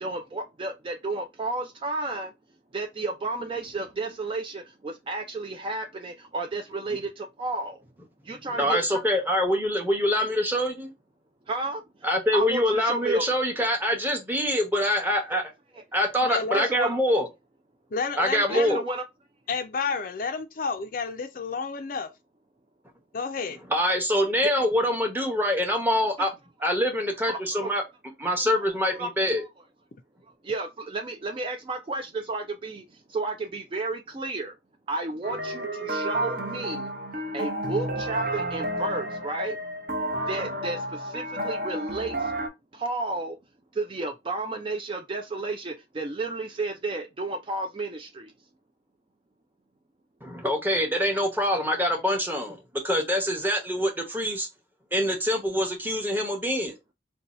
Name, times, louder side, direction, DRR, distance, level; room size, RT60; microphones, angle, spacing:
voice 1, 0.0-2.3 2.7-7.8 8.2-9.0 11.5-11.8 12.3-13.2 16.5-16.9 18.5-19.0 26.2-26.3 27.3-27.7 28.5-28.6 28.9-29.1 30.4-34.6 34.9-36.9 37.3-39.6 40.3-42.3 42.7-43.4 43.7-48.3, right 2 dB, 25° right, 0.3 m, -32 dB
voice 2, 8.6-10.9 12.0-15.5 15.9-17.3 18.2-18.8 23.7-26.3 26.6-27.8 28.2-29.4 50.2-52.6 52.8-54.5 54.9-56.7, equal, 10° right, 0.8 m, -25 dB
voice 3, 16.2-16.7 17.9-18.8 19.5-22.1 23.1-23.6, left 5 dB, 50° left, 0.4 m, -30 dB
sound 1, 35.2-42.5, right 1 dB, 50° right, 0.7 m, -31 dB
2.7 x 2.2 x 4.0 m
head